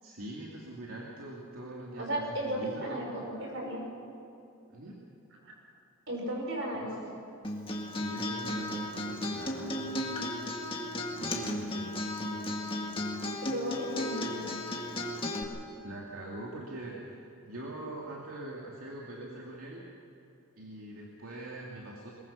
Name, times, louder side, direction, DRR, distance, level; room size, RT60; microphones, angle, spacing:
voice 1, 0.0-3.0 4.7-5.0 6.8-7.0 7.9-10.0 10.7-10.9 11.2-12.5 15.6-19.8 20.6-22.1, right 1 dB, 80° right, -4 dB, 2.7 m, -43 dB
voice 2, 2.0-3.8 5.4-5.5 6.1-7.0 13.4-14.5, right 1 dB, 60° right, -1 dB, 6.1 m, -35 dB
Acoustic guitar, 7.4-15.4, left 1 dB, 25° left, 1.9 m, -35 dB
22.5 x 21.5 x 5.8 m, 2.7 s
head